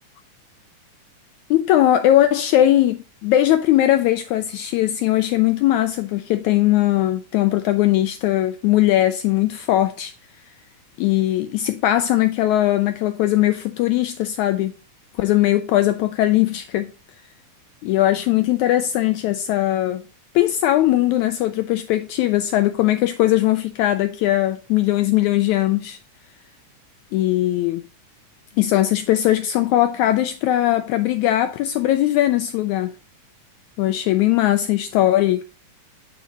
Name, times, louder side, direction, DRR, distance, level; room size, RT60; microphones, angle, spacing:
voice 1, 1.5-10.1 11.0-14.7 15.2-16.9 17.8-20.0 20.3-26.0 27.1-27.8 28.6-32.9 33.8-35.4, left 14 dB, 85° left, 1.6 m, -19 dB
9.8 x 5.0 x 4.1 m
omnidirectional pair, 3.9 m